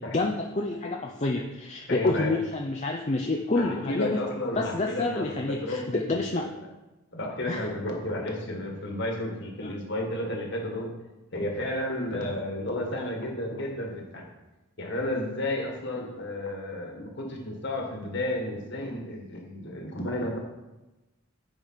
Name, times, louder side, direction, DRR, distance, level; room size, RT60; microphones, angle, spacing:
voice 1, 0.1-4.2 4.6-6.4 7.5-7.6 9.6-9.7 12.1-12.3 13.0-13.1, left 2 dB, 30° left, 0 dB, 0.5 m, -28 dB
voice 2, 1.9-2.3 3.6-6.4 7.1-11.0 11.3-14.3 14.8-20.4, left 1 dB, 55° left, 1 dB, 1.8 m, -32 dB
9.1 x 5.1 x 5.7 m, 1.1 s
head